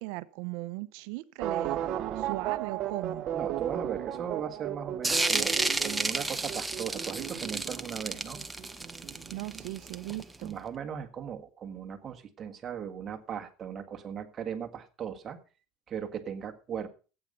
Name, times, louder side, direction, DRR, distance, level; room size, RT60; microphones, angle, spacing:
voice 1, 0.0-1.8 2.2-3.3 9.3-10.6, right 20 dB, 75° right, 15 dB, 0.7 m, -38 dB
sound 1, 1.4-9.9 10.2-10.3, right 11 dB, 45° right, 1.1 m, -35 dB
voice 2, 3.3-8.5 10.4-15.4 15.9-16.9, right 8 dB, 30° right, 6 dB, 1.7 m, -38 dB
sound 2, 5.0-10.4, right 2 dB, 5° right, 0.7 m, -31 dB
15.0 x 9.0 x 5.4 m, 0.35 s
cardioid pair, 150°, 0 cm